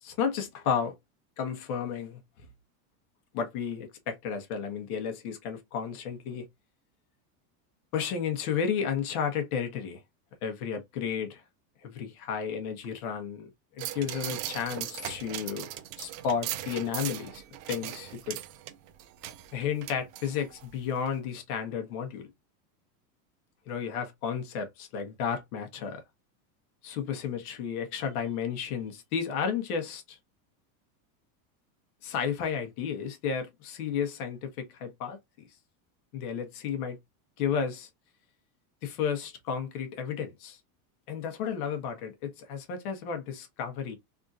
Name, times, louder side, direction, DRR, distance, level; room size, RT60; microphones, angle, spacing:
voice 1, 0.0-0.9 1.4-2.5 3.3-6.5 7.9-10.0 10.4-11.4 11.8-13.5 13.7-15.7 16.0-18.4 19.5-22.3 23.7-26.0 26.8-30.2 32.0-35.5 36.1-37.0 37.4-37.9 38.8-40.6 41.1-43.9, left 7 dB, 70° left, 1.2 m, -32 dB
sound 1, 13.8-20.7 21.1-21.2, right 13 dB, 65° right, 0.7 m, -39 dB
3.5 x 2.6 x 2.4 m
supercardioid pair, 155°, 46 cm